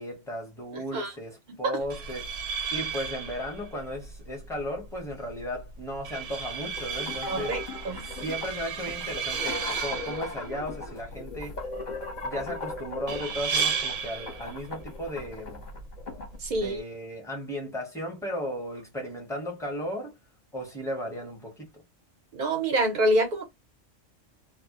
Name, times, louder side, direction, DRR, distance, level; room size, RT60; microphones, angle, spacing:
voice 1, 0.0-2.3 2.7-7.6 8.0-11.6 12.2-15.6 16.5-20.1 20.5-21.8, equal, 5° left, 0.7 m, -35 dB
sound 1, 1.8-16.8, right 6 dB, 80° right, 0.9 m, -35 dB
sound 2, 6.8-16.4, left 3 dB, 45° left, 0.8 m, -39 dB
voice 2, 7.3-7.6 7.8-8.0 16.4-16.8 22.3-23.4, right 1 dB, 50° right, 0.6 m, -26 dB
2.1 x 2.1 x 2.8 m
omnidirectional pair, 1.3 m